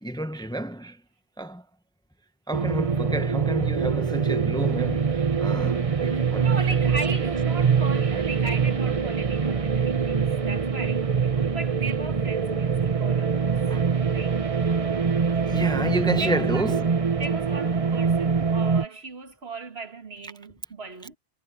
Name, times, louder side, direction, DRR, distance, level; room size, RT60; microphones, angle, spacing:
voice 1, 0.0-1.0 1.4-1.6 2.5-6.5 13.7-13.9 14.9-15.0 15.4-16.9, right 1 dB, 5° left, 0.8 m, -30 dB
sound 1, 2.5-18.9, right 6 dB, 35° right, 1.0 m, -24 dB
voice 2, 6.3-13.7 14.1-14.5 15.9-16.8 17.1-21.2, right 3 dB, 80° right, 2.2 m, -37 dB
omnidirectional pair, 1.0 m